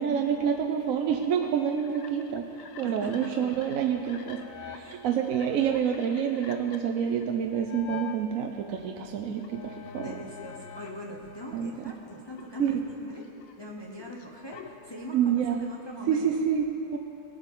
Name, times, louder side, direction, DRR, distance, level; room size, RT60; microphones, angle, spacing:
voice 1, 0.0-10.2 11.5-11.7 12.6-12.7 15.1-15.7 16.1-17.0, right 8 dB, 65° right, 3 dB, 0.9 m, -28 dB
sound 1, 1.1-8.2 8.7-11.6 11.9-15.5, left 8 dB, 65° left, 0.9 m, -46 dB
voice 2, 2.8-3.5 4.7-4.9 10.0-13.2 13.6-16.3, equal, 25° left, -1 dB, 0.6 m, -41 dB
19.0 x 8.0 x 3.8 m, 2.8 s
omnidirectional pair, 1.7 m